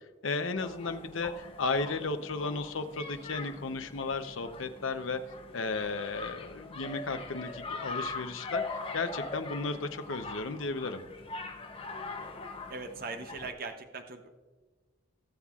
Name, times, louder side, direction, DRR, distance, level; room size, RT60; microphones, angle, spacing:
voice 1, 0.2-5.2 5.5-11.0, left 3 dB, 75° left, 8 dB, 0.7 m, -34 dB
sound 1, 0.5-13.5, left 3 dB, 25° left, 0.7 m, -42 dB
voice 2, 12.7-14.3, right 3 dB, 45° right, 6 dB, 0.7 m, -40 dB
17.5 x 7.4 x 2.4 m, 1.4 s
head